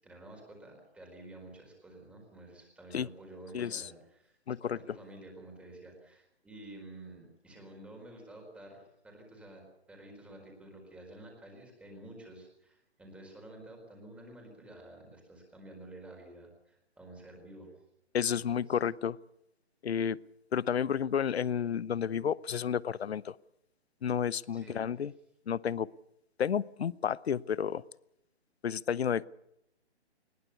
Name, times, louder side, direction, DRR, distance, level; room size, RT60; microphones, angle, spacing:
voice 1, 0.0-17.8 18.3-18.8 24.5-24.9, right 1 dB, 5° right, 2 dB, 4.5 m, -51 dB
voice 2, 3.5-3.9 4.5-4.8 18.1-19.2 19.8-20.2 20.5-23.4 24.0-25.1 25.5-25.9 26.4-27.8 28.6-29.3, left 8 dB, 65° left, 21 dB, 0.8 m, -31 dB
21.0 x 21.0 x 6.9 m, 0.80 s
hypercardioid pair, 160°, 34 cm